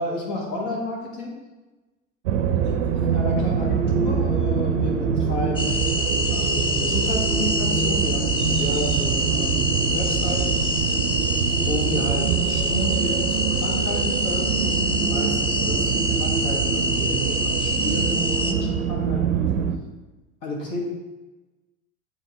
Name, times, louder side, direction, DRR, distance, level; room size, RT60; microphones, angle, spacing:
voice 1, 0.0-1.4 2.6-5.8 6.3-10.9 11.6-19.6 20.4-20.8, left 1 dB, 65° left, -3 dB, 1.9 m, -31 dB
sound 1, 2.3-19.8, right 7 dB, 70° right, 0.6 m, -24 dB
sound 2, 5.6-18.5, equal, 15° left, 0.5 m, -26 dB
8.7 x 3.8 x 3.0 m, 1.1 s
figure-of-eight pair, 65°, 39 cm